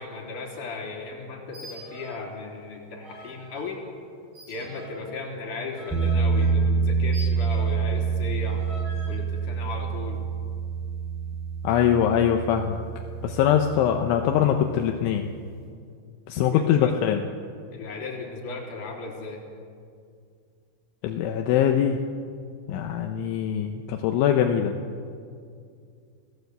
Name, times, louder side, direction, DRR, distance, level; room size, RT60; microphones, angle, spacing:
voice 1, 0.0-3.8 4.5-8.7 9.1-10.2 16.4-17.0 17.7-19.4, left 3 dB, 45° left, 0 dB, 4.6 m, -36 dB
sound 1, 1.4-2.3 2.6-3.7 4.3-7.9 8.4-9.2, right 1 dB, 65° right, 9.5 m, -44 dB
sound 2, 5.9-14.8, right 5 dB, ahead, 4.8 m, -27 dB
voice 2, 11.6-12.8 13.2-15.2 16.3-17.2 21.0-22.0 22.7-24.7, left 9 dB, 80° left, 4 dB, 3.3 m, -22 dB
29.5 x 17.5 x 8.1 m, 2.3 s
omnidirectional pair, 5.6 m